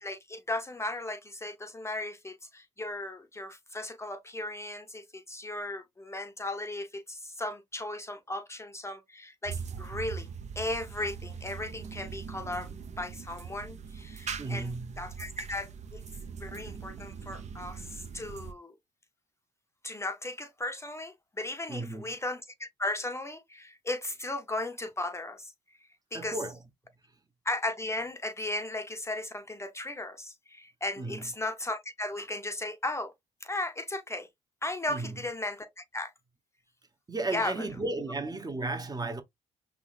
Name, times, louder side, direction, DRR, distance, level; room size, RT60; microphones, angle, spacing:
voice 1, 0.0-10.3 10.6-12.7 13.0-14.7 15.0-16.0 16.4-18.7 19.8-25.5 26.1-26.4 27.5-33.1 33.4-34.3 34.6-36.1 37.3-37.5, left 2 dB, 20° left, 0.6 m, -36 dB
sound 1, 9.5-18.5, right 6 dB, 55° right, 0.8 m, -41 dB
voice 2, 14.4-15.1 21.7-22.1 26.1-26.6 31.0-31.3 34.9-35.2 37.1-39.2, right 2 dB, 30° right, 0.9 m, -34 dB
3.6 x 3.1 x 2.4 m
supercardioid pair, 65°, 14 cm